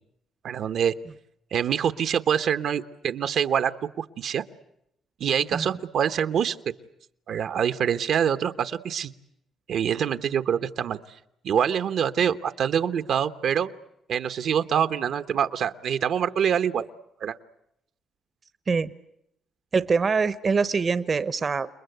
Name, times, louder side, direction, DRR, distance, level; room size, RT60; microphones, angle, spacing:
voice 1, 0.4-0.9 1.5-4.4 5.2-6.6 7.3-9.1 9.7-11.0 11.4-13.7 14.1-16.9 17.2-17.4, right 8 dB, 70° right, 9 dB, 1.1 m, -25 dB
voice 2, 19.7-21.7, right 5 dB, 40° right, 14 dB, 0.9 m, -24 dB
29.5 x 21.0 x 8.0 m, 0.81 s
cardioid pair, 90°, 0 cm